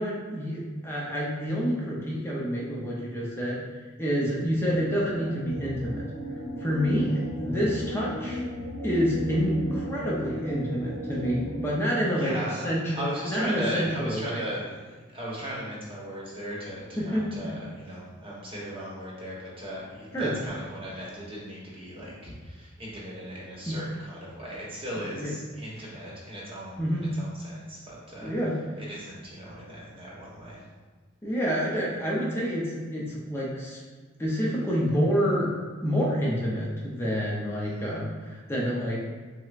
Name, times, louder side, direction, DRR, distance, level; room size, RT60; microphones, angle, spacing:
voice 1, 0.0-3.6 4.0-6.0 6.6-8.5 8.8-12.9 13.3-14.4 17.0-17.5 20.1-20.3 23.7-23.8 25.2-25.3 26.8-27.1 28.2-28.5 31.2-33.8 34.2-35.5 35.8-39.0, equal, 10° left, -5 dB, 0.5 m, -28 dB
sound 1, 4.2-11.5, equal, 65° left, 0.8 m, -35 dB
voice 2, 12.1-12.5 12.9-28.3 28.8-30.6 37.7-37.9, equal, 25° right, -6 dB, 1.0 m, -37 dB
6.3 x 2.1 x 2.4 m, 1.4 s
head